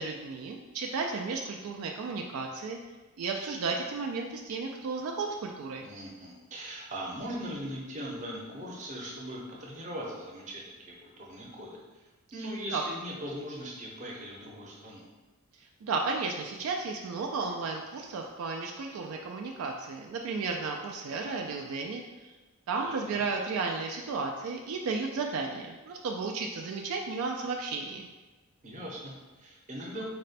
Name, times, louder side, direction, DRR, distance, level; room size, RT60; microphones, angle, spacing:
voice 1, 0.0-2.8 3.2-5.9 12.7-12.8 15.6-22.3 22.7-28.1, right 4 dB, 75° right, 1 dB, 0.3 m, -33 dB
voice 2, 5.8-11.8 12.3-15.1 22.8-23.2 28.6-30.0, equal, 35° right, -3 dB, 0.7 m, -40 dB
4.2 x 2.1 x 4.0 m, 1.2 s
head